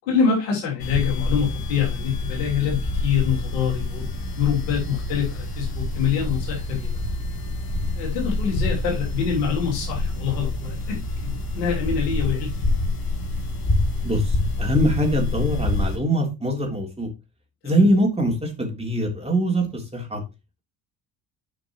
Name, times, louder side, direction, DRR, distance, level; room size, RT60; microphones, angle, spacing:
voice 1, 0.1-6.9 7.9-12.5 17.6-17.8, left 7 dB, 75° left, 3.0 m, -25 dB
sound 1, 0.8-16.0, left 2 dB, 45° left, 3.1 m, -27 dB
voice 2, 14.0-17.1 17.6-20.2, equal, 10° right, 3.5 m, -23 dB
10.5 x 6.0 x 3.1 m
figure-of-eight pair, 50°, 49 cm